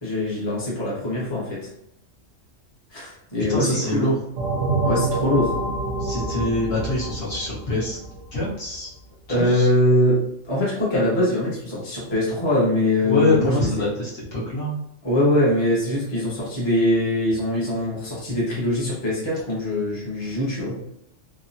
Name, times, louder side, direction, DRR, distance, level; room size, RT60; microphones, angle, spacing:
voice 1, 0.0-1.6 2.9-4.1 4.8-5.5 9.3-10.2 10.4-13.9 15.0-20.8, left 1 dB, 25° left, -7 dB, 0.8 m, -22 dB
voice 2, 3.5-4.2 6.0-8.0 8.3-8.9 9.3-9.7 13.0-14.8, left 1 dB, 55° left, -8 dB, 1.2 m, -25 dB
sound 1, 4.4-8.8, right 2 dB, 80° right, 0.9 m, -27 dB
3.1 x 2.0 x 2.6 m, 0.76 s
omnidirectional pair, 1.3 m